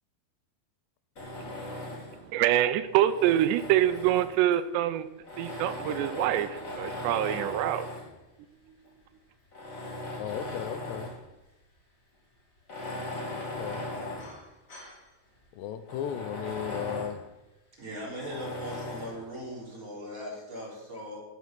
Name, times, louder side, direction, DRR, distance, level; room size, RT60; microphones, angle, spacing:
Tools, 1.2-2.3 2.9-4.5 5.2-8.2 8.9-9.0 9.5-11.3 11.6-11.7 12.6-15.0 15.4-15.5 15.9-17.2 18.2-19.2, left 2 dB, 30° left, 1.7 m, -38 dB
voice 1, 1.4-5.1 5.4-7.9 8.8-8.9, right 12 dB, 85° right, 12 dB, 2.8 m, -26 dB
voice 2, 10.2-11.1 13.6-13.8 15.5-17.2, left 10 dB, 85° left, 12 dB, 2.9 m, -35 dB
voice 3, 17.7-21.2, equal, 20° right, -5 dB, 3.6 m, -39 dB
15.0 x 6.1 x 5.9 m, 0.98 s
omnidirectional pair, 4.9 m